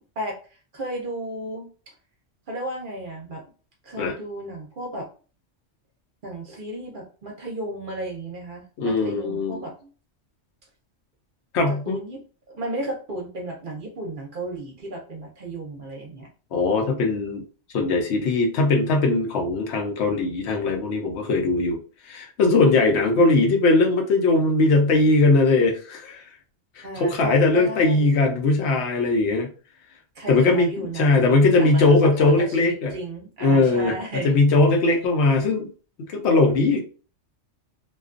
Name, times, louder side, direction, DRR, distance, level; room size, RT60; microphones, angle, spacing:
voice 1, 0.2-1.7 2.5-3.4 3.8-5.1 6.2-9.9 11.7-12.2 12.5-16.3 22.7-23.5 26.8-28.2 30.1-31.3 31.6-34.4 34.8-35.0, right 1 dB, 55° right, 0 dB, 0.7 m, -34 dB
voice 2, 8.8-9.6 11.5-12.0 16.5-17.4 17.7-21.8 22.0-26.2 26.8-29.5 30.3-32.9 33.4-33.9 34.2-35.7 36.1-36.8, left 3 dB, 70° left, 2 dB, 0.9 m, -20 dB
2.4 x 2.2 x 2.4 m, 0.38 s
omnidirectional pair, 1.2 m